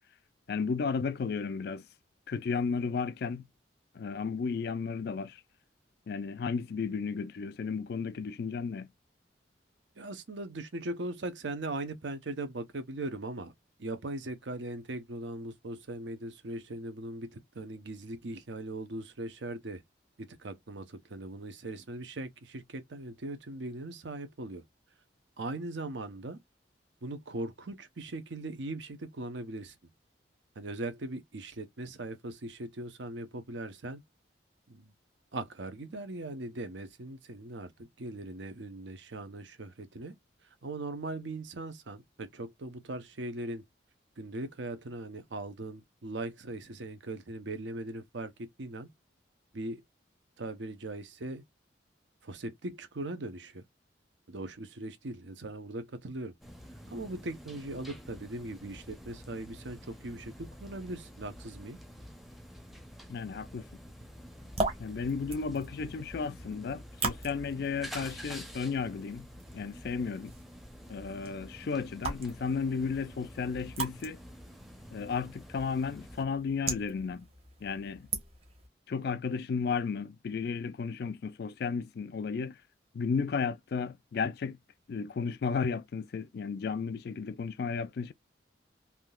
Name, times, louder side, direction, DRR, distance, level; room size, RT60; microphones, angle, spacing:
voice 1, 0.5-1.8 2.3-3.5 3.9-5.4 6.1-8.9 63.1-63.6 64.8-69.3 69.5-70.3 70.9-74.2 74.9-77.3 77.6-78.1 78.9-82.6 82.9-84.6 84.9-88.1, left 5 dB, 55° left, 0.3 m, -33 dB
voice 2, 10.0-13.5 13.8-19.8 20.2-24.6 25.4-26.4 27.0-29.8 30.6-34.0 34.7-34.9 35.3-40.1 40.6-43.6 44.2-48.9 49.5-49.8 50.4-51.4 52.2-53.6 54.3-56.3 56.9-61.8, right 2 dB, 80° right, 0.8 m, -39 dB
sound 1, 56.4-76.2, equal, ahead, 0.6 m, -48 dB
sound 2, 64.3-78.7, right 3 dB, 35° right, 1.0 m, -41 dB
3.5 x 2.7 x 2.3 m
head